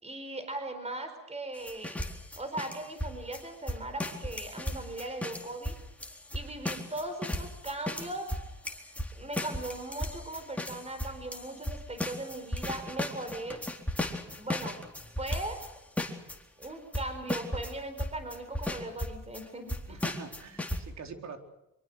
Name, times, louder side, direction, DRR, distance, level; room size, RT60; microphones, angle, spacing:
voice 1, 0.0-2.0 2.4-5.7 6.3-8.3 9.1-13.6 14.3-14.8 15.2-15.7 16.6-20.0, right 2 dB, 20° right, 8 dB, 4.5 m, -39 dB
sound 1, 1.5-15.7 16.0-16.4 16.6-16.7 16.9-17.7 18.0-19.4 19.7-20.8, left 1 dB, 5° left, 4.0 m, -35 dB
voice 2, 19.9-21.4, right 5 dB, 65° right, 5 dB, 4.0 m, -44 dB
25.0 x 24.0 x 6.5 m, 0.90 s
cardioid pair, 90°, 30 cm